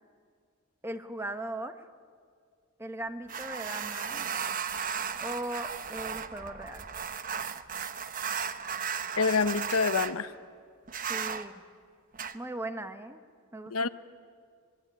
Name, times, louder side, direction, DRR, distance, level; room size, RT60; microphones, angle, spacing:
voice 1, 0.8-1.9 2.8-4.3 5.2-6.9 11.1-11.6 12.3-13.2 13.5-13.9, right 1 dB, 10° right, 9 dB, 1.0 m, -38 dB
sound 1, 3.3-10.1 10.9-11.5 12.1-12.3, right 7 dB, 40° right, 0.9 m, -35 dB
voice 2, 9.2-10.3 13.7-13.9, left 4 dB, 80° left, 12 dB, 0.9 m, -26 dB
24.0 x 22.0 x 9.4 m, 2.2 s
head